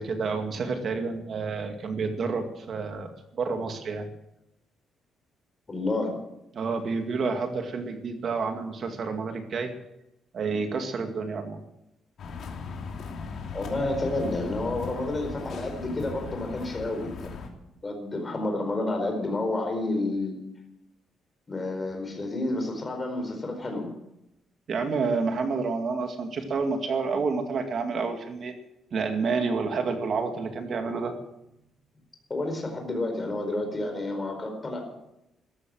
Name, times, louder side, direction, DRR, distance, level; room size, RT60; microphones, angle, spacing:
voice 1, 0.0-3.1 3.4-4.1 6.5-9.7 10.3-11.6 24.7-28.5 28.9-31.1, right 4 dB, 45° right, 5 dB, 2.2 m, -29 dB
voice 2, 5.7-6.2 13.5-20.4 21.5-23.9 32.3-34.8, left 2 dB, 20° left, 3 dB, 4.6 m, -30 dB
sound 1, 12.2-17.5, left 4 dB, 55° left, 2.8 m, -38 dB
14.5 x 13.0 x 7.7 m, 0.86 s
cardioid pair, 160°, 0 cm